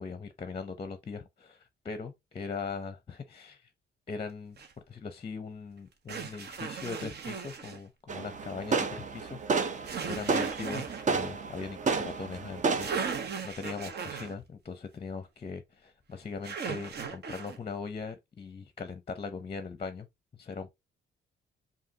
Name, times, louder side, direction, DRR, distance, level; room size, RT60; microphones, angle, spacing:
voice 1, 0.0-3.7 4.1-4.6 4.9-9.7 10.0-20.1 20.4-20.7, left 4 dB, 30° left, 0.6 m, -40 dB
sound 1, 4.6-4.7 6.1-7.8 9.8-11.0 12.5-12.6 12.8-14.3 16.4-17.6, right 6 dB, 55° right, 1.0 m, -37 dB
sound 2, 8.1-13.2, right 4 dB, 40° right, 0.7 m, -31 dB
4.9 x 2.7 x 2.8 m
cardioid pair, 90°, 20 cm